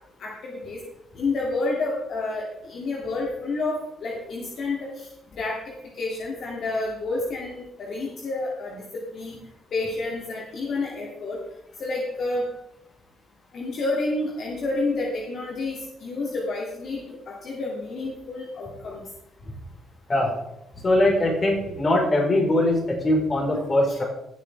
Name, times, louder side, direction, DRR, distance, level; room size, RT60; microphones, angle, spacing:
voice 1, 0.2-0.8 1.1-5.6 6.0-8.8 9.1-9.4 9.7-11.4 11.8-12.5 13.5-19.0, left 2 dB, 60° left, -3 dB, 2.4 m, -29 dB
voice 2, 20.8-24.0, left 1 dB, 35° left, -1 dB, 4.3 m, -21 dB
17.5 x 7.5 x 3.4 m, 0.87 s
cardioid pair, 90°, 0 cm